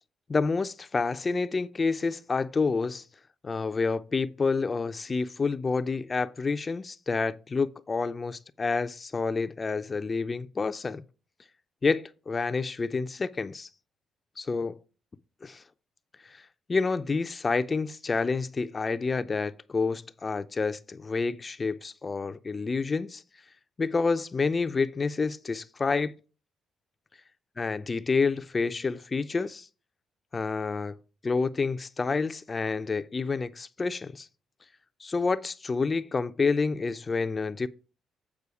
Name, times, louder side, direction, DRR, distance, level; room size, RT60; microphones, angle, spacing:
voice 1, 0.3-3.0 3.4-11.0 11.8-13.7 14.4-14.8 15.4-15.6 16.3-16.4 16.7-23.2 23.8-26.1 27.6-29.7 30.3-31.0 31.2-34.3 35.0-37.7, left 4 dB, 30° left, 0.4 m, -28 dB
8.3 x 4.9 x 4.8 m
cardioid pair, 90°, 0 cm